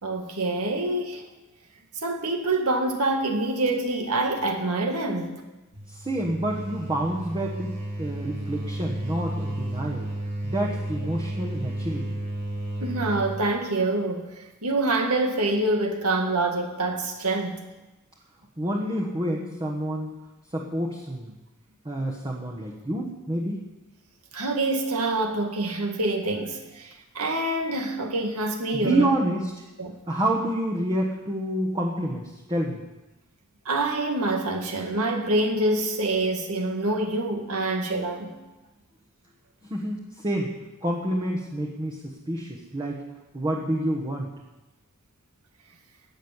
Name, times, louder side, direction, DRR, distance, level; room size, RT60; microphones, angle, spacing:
voice 1, 0.0-1.2 2.0-5.4 12.8-17.6 24.3-29.1 29.8-30.0 33.7-38.3, right 2 dB, 85° right, 3 dB, 1.9 m, -26 dB
sound 1, 5.7-13.5, right 1 dB, 35° right, 5.4 m, -32 dB
voice 2, 5.9-10.1 10.4-12.2 18.6-20.1 20.5-21.3 21.8-23.6 28.7-29.5 30.1-32.8 39.7-40.5 40.8-43.0 43.3-44.3, right 1 dB, 20° right, -2 dB, 1.3 m, -28 dB
17.5 x 6.4 x 7.3 m, 1.1 s
head